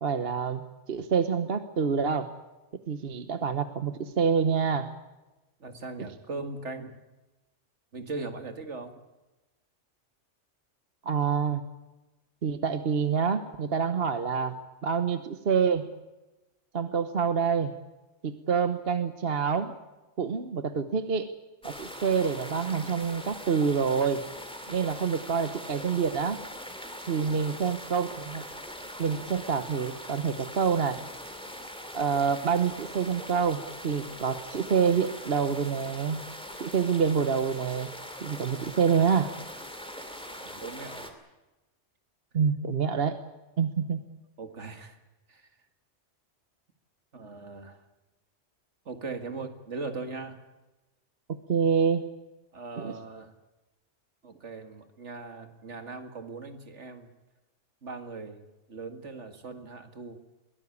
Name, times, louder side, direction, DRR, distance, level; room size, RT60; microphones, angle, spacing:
voice 1, 0.0-2.3 2.9-4.9 6.0-6.1 11.0-11.6 12.4-15.9 16.7-17.7 18.2-19.7 20.2-21.3 21.6-24.3 24.7-26.4 27.1-28.4 29.0-31.0 31.9-36.2 36.6-37.9 38.2-39.3 42.3-43.2 43.6-44.0 51.3-52.1 52.8-52.9, right 6 dB, 55° right, 10 dB, 1.2 m, -27 dB
voice 2, 5.6-7.0 7.9-9.0 27.1-27.4 40.3-41.1 44.4-45.0 45.3-45.5 47.1-47.8 48.9-50.4 52.5-53.3 54.2-57.1 57.8-58.4 58.7-60.2, right 3 dB, 70° right, 7 dB, 2.3 m, -39 dB
sound 1, 21.6-41.1, equal, 5° left, 2.4 m, -42 dB
23.0 x 17.5 x 8.5 m, 1.1 s
omnidirectional pair, 1.2 m